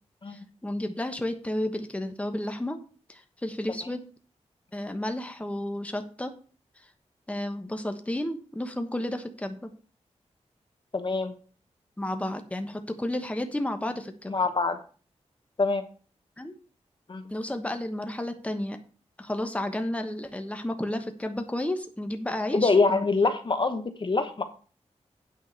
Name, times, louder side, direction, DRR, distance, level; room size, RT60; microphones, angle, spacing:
voice 1, 0.3-2.8 3.1-4.0 4.7-6.3 7.3-9.7 12.0-14.4 16.4-16.5 17.3-18.8 19.2-23.0, left 1 dB, 10° left, 6 dB, 1.2 m, -32 dB
voice 2, 10.9-11.3 14.3-14.8 15.6-15.8 17.1-17.2 22.5-24.4, left 3 dB, 45° left, 8 dB, 1.0 m, -24 dB
9.1 x 5.1 x 6.5 m, 0.39 s
wide cardioid pair, 85°, 12 cm